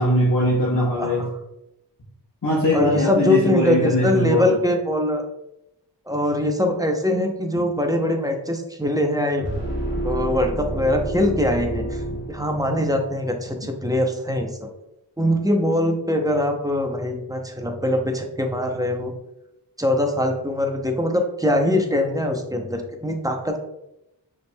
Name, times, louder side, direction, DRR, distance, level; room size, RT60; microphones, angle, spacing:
voice 1, 0.0-1.3 2.4-4.6, left 1 dB, 50° left, -8 dB, 1.2 m, -21 dB
voice 2, 1.0-1.3 2.7-5.2 6.1-9.5 10.0-12.0 12.3-14.7 15.2-19.1 19.8-23.6, left 1 dB, 10° right, 3 dB, 0.6 m, -22 dB
sound 1, 9.4-12.9, right 1 dB, 30° left, 1.5 m, -29 dB
5.6 x 3.3 x 2.2 m, 0.86 s
wide cardioid pair, 55°, 40 cm